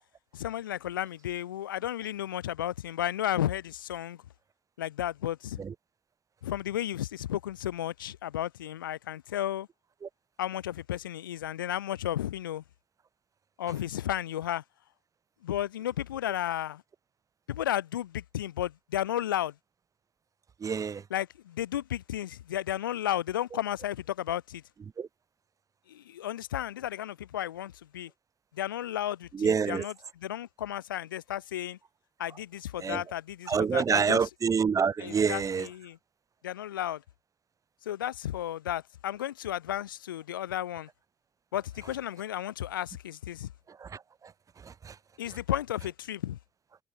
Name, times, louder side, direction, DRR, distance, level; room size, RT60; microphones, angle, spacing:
voice 1, 0.3-4.2 4.8-5.6 6.4-9.7 10.4-12.6 13.6-14.6 15.4-16.8 17.5-19.5 21.1-24.6 25.9-28.1 28.5-31.8 32.2-34.3 35.0-36.0 36.4-37.0 37.8-40.9 41.5-43.5 45.2-46.4, left 12 dB, 85° left, 1.1 m, -33 dB
voice 2, 20.6-21.0 25.0-25.1 29.3-29.8 32.8-33.0 33.5-35.7 43.8-44.0 44.8-44.9, right 6 dB, 30° right, 0.5 m, -27 dB
hypercardioid pair, 50°, 11 cm